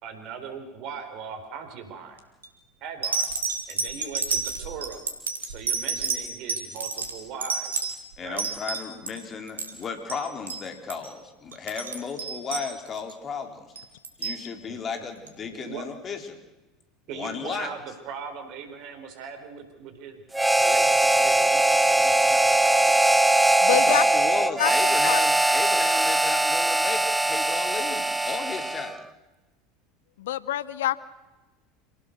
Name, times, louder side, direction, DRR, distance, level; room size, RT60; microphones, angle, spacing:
voice 1, 0.0-2.2 2.8-3.3 3.7-5.0 5.5-7.9 8.2-8.5 12.0-12.1 12.4-12.5 14.7-15.0 15.4-15.9 17.1-20.2 20.5-23.1, right 6 dB, 55° right, 7 dB, 4.5 m, -40 dB
sound 1, 2.2-2.5 3.0-9.2 9.5-9.8 10.1-10.2 10.5-10.6 10.9-11.1 11.5-13.1 13.8-14.4 15.3-15.4, right 5 dB, 80° right, 2.5 m, -30 dB
voice 2, 8.2-13.7 14.2-16.4 17.1-17.7 23.6-29.0, left 5 dB, 35° left, 5 dB, 4.0 m, -34 dB
Harmonica, 20.3-29.0, right 2 dB, 10° right, 1.0 m, -21 dB
voice 3, 23.6-24.0 24.6-25.2 30.2-31.0, left 13 dB, 70° left, 19 dB, 0.7 m, -26 dB
27.5 x 18.0 x 6.8 m, 1.1 s
figure-of-eight pair, 75°, 0 cm